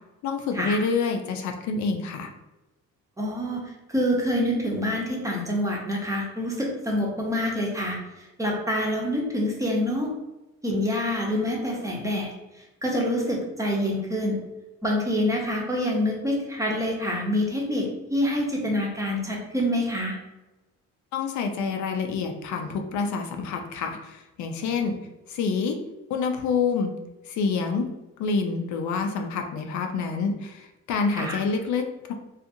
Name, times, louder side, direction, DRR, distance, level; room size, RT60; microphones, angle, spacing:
voice 1, 0.2-2.3 21.1-25.0 25.3-25.8 26.1-26.9 27.2-27.9 28.2-32.1, left 5 dB, 70° left, 4 dB, 0.5 m, -27 dB
voice 2, 3.2-3.6 3.9-10.1 10.6-12.3 12.8-14.4 14.8-20.2 31.1-31.4, left 1 dB, 10° right, -2 dB, 0.7 m, -26 dB
2.5 x 2.4 x 2.7 m, 1.0 s
cardioid pair, 90°, 30 cm